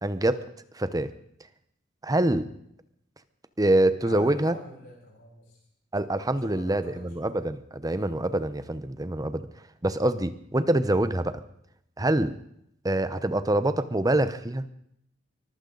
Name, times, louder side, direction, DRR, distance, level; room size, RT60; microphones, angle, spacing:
voice 1, 0.0-0.4 0.8-1.1 2.0-2.5 3.6-4.5 5.9-9.5 9.8-11.4 12.0-12.4 12.8-14.7, right 1 dB, 20° right, 12 dB, 0.9 m, -25 dB
voice 2, 4.0-5.6 6.4-7.4, left 1 dB, 70° left, -3 dB, 6.8 m, -43 dB
24.0 x 15.0 x 4.0 m, 0.72 s
head